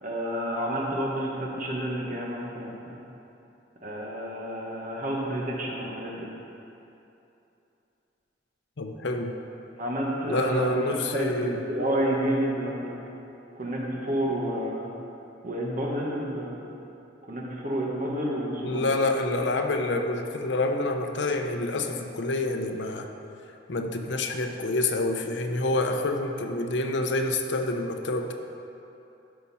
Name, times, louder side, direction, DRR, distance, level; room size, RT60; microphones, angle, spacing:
voice 1, 0.0-3.0 3.8-6.3 9.8-13.0 13.5-14.9 15.4-16.6 17.3-18.8, right 1 dB, 45° right, -3 dB, 1.4 m, -30 dB
voice 2, 8.8-9.3 10.3-11.6 18.6-23.1 23.7-28.3, left 2 dB, 75° left, 4 dB, 0.7 m, -27 dB
12.5 x 5.6 x 4.2 m, 2.9 s
head